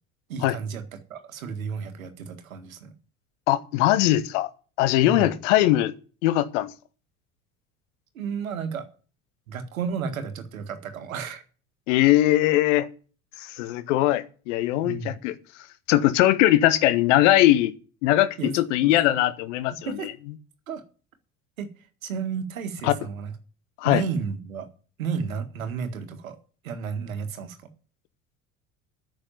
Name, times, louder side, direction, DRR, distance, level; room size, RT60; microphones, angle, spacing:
voice 1, 0.3-0.8 1.1-2.9 5.0-5.3 8.1-8.8 9.5-11.4 14.8-15.2 18.4-18.5 18.8-19.2 19.8-20.1 20.7-20.8 21.6-21.7 22.0-23.3 23.8-24.7 25.0-26.4 26.6-27.6, right 6 dB, 70° right, 1.7 m, -32 dB
voice 2, 3.5-4.5 4.8-5.9 6.2-6.7 11.9-12.9 13.4-15.4 15.9-17.7 18.0-20.1 22.8-22.9 23.8-24.0, left 15 dB, 55° left, 1.0 m, -21 dB
9.9 x 6.3 x 8.5 m
figure-of-eight pair, 65°, 43 cm